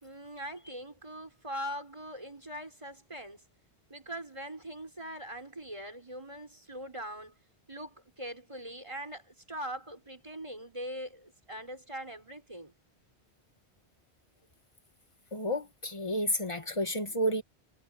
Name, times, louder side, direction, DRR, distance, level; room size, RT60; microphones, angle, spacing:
voice 1, 0.0-3.4 3.9-7.4 7.7-12.7, equal, 25° right, 5.4 m, -42 dB
voice 2, 15.3-17.4, equal, 30° left, 2.3 m, -31 dB
omnidirectional pair, 1.1 m